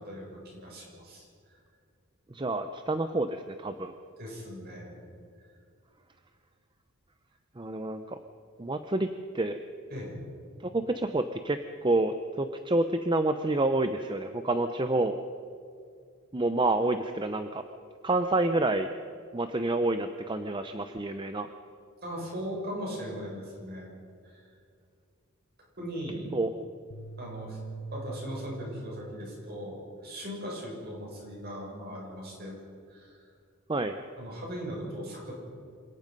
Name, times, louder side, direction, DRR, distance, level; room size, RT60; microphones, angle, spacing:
voice 1, 0.0-1.6 4.2-5.0 9.9-10.2 22.0-23.9 24.2-24.5 25.8-26.3 27.2-27.6 27.9-32.6 32.9-33.3 34.2-35.3, equal, 45° right, -2 dB, 7.0 m, -39 dB
voice 2, 2.3-3.9 7.6-8.2 8.6-9.1 9.3-9.6 10.6-15.2 16.3-17.6 18.0-18.9 19.3-21.5 26.3-26.5 33.7-34.0, right 2 dB, 20° right, 8 dB, 0.6 m, -28 dB
sound 1, 26.9-29.4, right 4 dB, 75° left, 1.2 m, -43 dB
26.5 x 18.0 x 5.4 m, 2.3 s
head